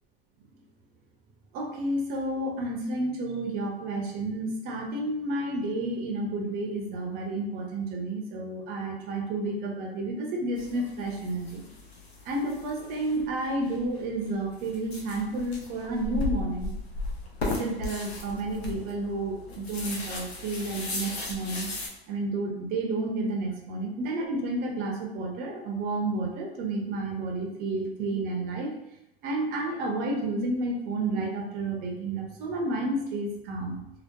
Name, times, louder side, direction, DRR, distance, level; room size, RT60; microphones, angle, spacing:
voice 1, 1.5-11.6 12.2-16.7 17.4-21.7 22.1-28.8 29.2-33.8, right 2 dB, 30° right, 1 dB, 0.5 m, -31 dB
sound 1, 10.6-21.9, left 2 dB, 85° left, 0.7 m, -37 dB
2.8 x 2.1 x 2.2 m, 0.84 s
hypercardioid pair, 115°, 31 cm